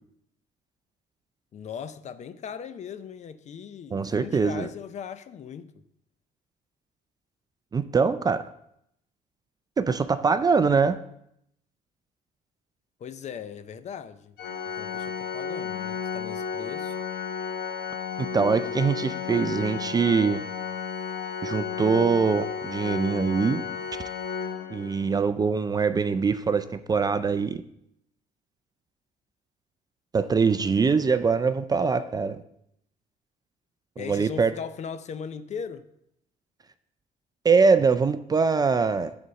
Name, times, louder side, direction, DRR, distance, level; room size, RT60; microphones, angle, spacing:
voice 1, 1.5-5.8 13.0-14.4 14.7-16.9 34.0-35.9, left 7 dB, 45° left, 0.5 m, -38 dB
voice 2, 3.9-4.7 7.7-8.5 9.8-11.0 18.3-20.4 21.4-23.6 24.7-27.6 30.1-32.4 34.0-34.6 37.4-39.2, right 5 dB, 25° right, 0.4 m, -23 dB
Organ, 14.4-25.2, left 6 dB, 65° left, 0.9 m, -33 dB
7.8 x 4.1 x 6.7 m
cardioid pair, 110°, 17 cm